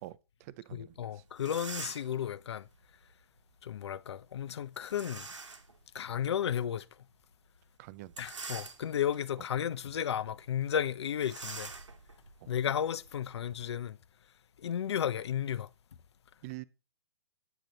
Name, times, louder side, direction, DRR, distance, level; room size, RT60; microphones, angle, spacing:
voice 1, 0.0-1.2 7.8-8.1 12.4-12.5 16.4-16.6, right 18 dB, 30° right, 0.7 m, -46 dB
voice 2, 0.7-2.7 3.6-5.3 5.9-6.9 8.2-11.7 12.5-14.0 14.6-15.7, left 9 dB, 65° left, 0.9 m, -33 dB
sound 1, 1.0-1.1 1.3-2.2 4.9-5.7 6.3-6.4 8.0-9.2 9.7-9.9 10.2-10.3 11.2-13.7, right 4 dB, 90° right, 2.0 m, -45 dB
10.5 x 9.1 x 3.9 m
hypercardioid pair, 140°, 15 cm